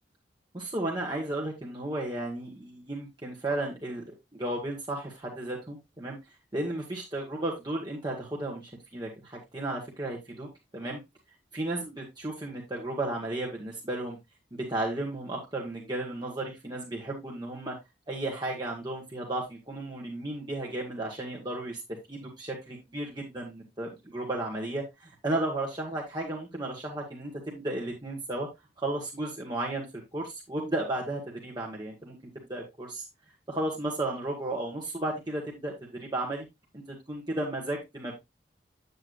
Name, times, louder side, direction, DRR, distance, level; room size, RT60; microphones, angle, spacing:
voice 1, 0.5-6.2 6.5-11.0 11.5-14.2 14.7-17.8 18.1-21.8 22.1-28.5 28.8-32.1 32.5-33.0 33.5-36.5 36.7-38.1, right 1 dB, 25° right, -3 dB, 1.6 m, -34 dB
8.7 x 8.1 x 2.5 m, 0.20 s
head